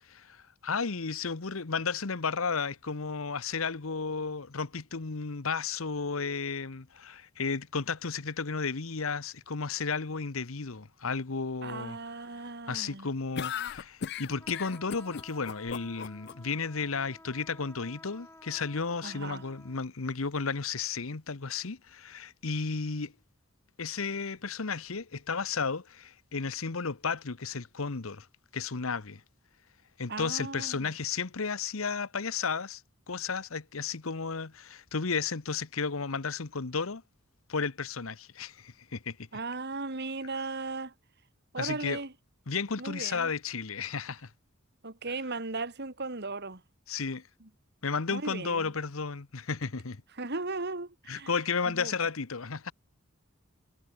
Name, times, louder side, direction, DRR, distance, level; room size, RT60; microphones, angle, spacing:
voice 1, 0.1-12.0 12.7-23.1 23.8-28.3 28.5-29.2 30.0-32.8 33.1-37.0 37.5-39.2 41.6-42.0 42.5-44.3 46.9-47.2 47.8-50.0 51.1-52.7, left 5 dB, 75° left, 1.1 m, -33 dB
voice 2, 11.6-13.1 19.0-19.4 30.1-30.9 39.3-40.9 41.5-42.1 42.8-43.3 44.8-46.6 48.1-48.7 50.2-51.3 51.7-51.9, right 3 dB, 55° right, 2.4 m, -37 dB
sound 1, 13.4-16.3, left 7 dB, 55° left, 0.5 m, -36 dB
sound 2, 14.4-19.8, left 1 dB, 10° left, 7.7 m, -53 dB
head